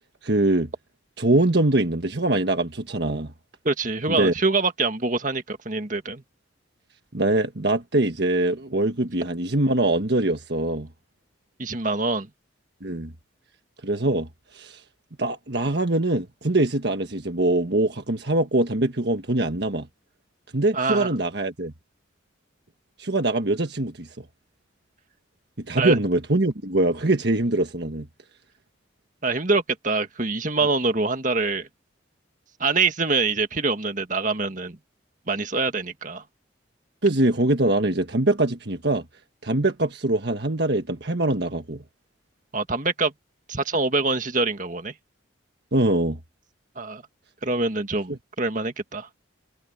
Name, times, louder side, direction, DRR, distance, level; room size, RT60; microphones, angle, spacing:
voice 1, 0.2-0.7 1.2-3.3 4.1-4.3 7.1-10.9 12.8-13.1 13.8-14.3 14.5-14.8 15.2-19.9 20.5-21.7 23.0-24.2 25.6-28.1 37.0-39.0 39.4-41.8 45.7-46.2 48.1-48.2, right 2 dB, 55° right, 1.5 m, -23 dB
voice 2, 3.7-6.2 11.6-12.3 20.7-21.1 25.8-26.0 29.2-31.7 32.6-34.8 35.3-36.2 42.5-43.1 43.5-44.9 46.8-47.0 47.4-49.1, right 3 dB, 40° right, 1.8 m, -25 dB
head